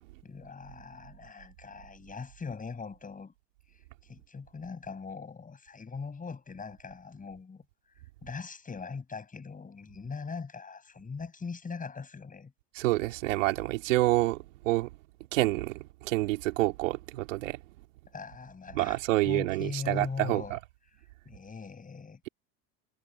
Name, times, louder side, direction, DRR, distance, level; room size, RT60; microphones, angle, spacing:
voice 1, 0.2-3.3 3.7-7.6 8.2-12.5 18.1-20.6 21.2-22.2, left 5 dB, 20° left, 7.7 m, -41 dB
voice 2, 12.7-14.9 15.3-17.6 18.7-20.6, right 18 dB, 90° right, 2.8 m, -28 dB
supercardioid pair, 105°, 37 cm